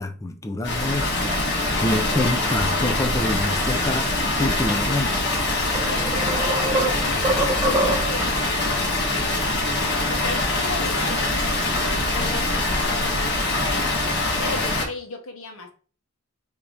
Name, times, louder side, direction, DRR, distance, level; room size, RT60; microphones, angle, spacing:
voice 1, 0.0-5.3, left 1 dB, 15° left, 0.4 m, -27 dB
Water, 0.6-14.8, left 2 dB, 55° left, 1.5 m, -23 dB
sound 1, 5.2-5.3 5.7-8.3, right 1 dB, 15° right, 0.7 m, -25 dB
voice 2, 5.9-15.7, left 3 dB, 70° left, 1.0 m, -36 dB
3.5 x 2.7 x 4.6 m
head